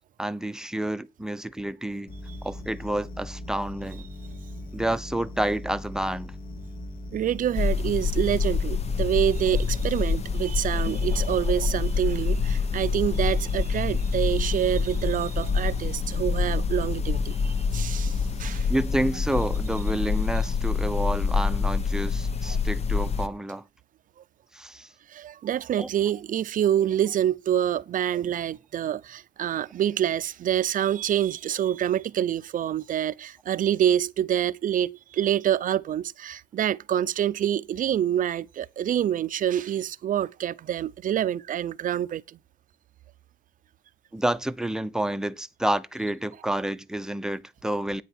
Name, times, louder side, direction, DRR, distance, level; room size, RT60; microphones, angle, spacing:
voice 1, 0.2-2.1 2.4-4.1 4.7-6.3 9.5-9.6 18.7-23.6 24.5-24.9 25.8-25.9 44.1-48.0, right 1 dB, 5° right, 0.9 m, -29 dB
sound 1, 2.1-20.0, left 1 dB, 55° left, 3.7 m, -39 dB
voice 2, 7.1-18.1 18.4-18.7 25.1-42.2, right 10 dB, 50° right, 0.7 m, -26 dB
sound 2, 7.6-23.3, left 5 dB, 40° left, 1.1 m, -26 dB
10.0 x 9.3 x 4.4 m
cardioid pair, 100°, 17 cm